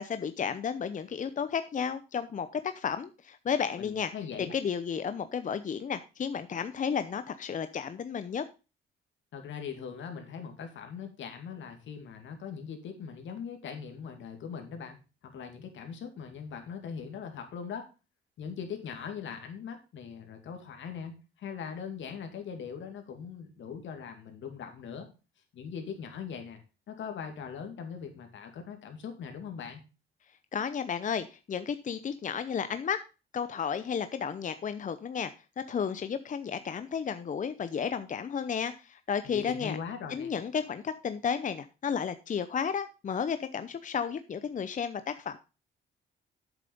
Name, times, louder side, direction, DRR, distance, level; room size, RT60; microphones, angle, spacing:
voice 1, 0.0-4.1 4.5-8.4 30.5-33.0 33.3-39.8 40.1-45.4, left 7 dB, 40° left, 11 dB, 0.8 m, -33 dB
voice 2, 3.8-4.5 9.3-17.8 18.4-25.1 25.5-26.6 26.9-29.8 39.2-40.3, left 7 dB, 70° left, 5 dB, 2.5 m, -41 dB
8.2 x 7.1 x 5.3 m, 0.30 s
cardioid pair, 90°, 20 cm